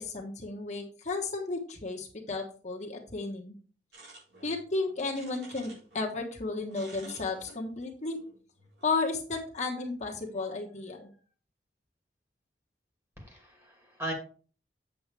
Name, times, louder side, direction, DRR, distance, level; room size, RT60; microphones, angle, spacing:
voice 1, 0.0-3.6 4.4-8.2 8.8-11.1, left 3 dB, 40° left, -1 dB, 1.3 m, -33 dB
sound 1, 3.9-6.1 6.3-8.9, right 1 dB, 75° right, 4.3 m, -52 dB
voice 2, 13.2-14.1, right 1 dB, 15° right, 2 dB, 2.4 m, -38 dB
7.9 x 7.5 x 3.4 m, 0.41 s
head